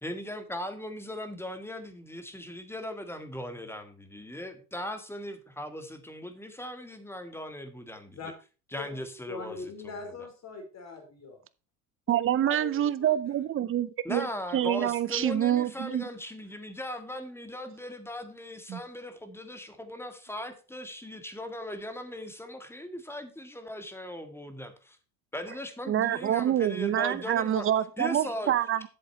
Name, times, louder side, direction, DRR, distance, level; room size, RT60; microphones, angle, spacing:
voice 1, 0.0-8.2 8.7-9.6 14.0-25.0 25.3-27.7 28.0-28.5, left 1 dB, 5° left, 1.8 m, -38 dB
voice 2, 9.3-11.4 12.4-13.7, left 4 dB, 40° left, 4.1 m, -42 dB
voice 3, 12.1-14.2 14.5-16.1 18.7-18.8 25.9-28.9, right 11 dB, 30° right, 0.8 m, -26 dB
8.2 x 7.4 x 4.4 m
hypercardioid pair, 80°, 43 cm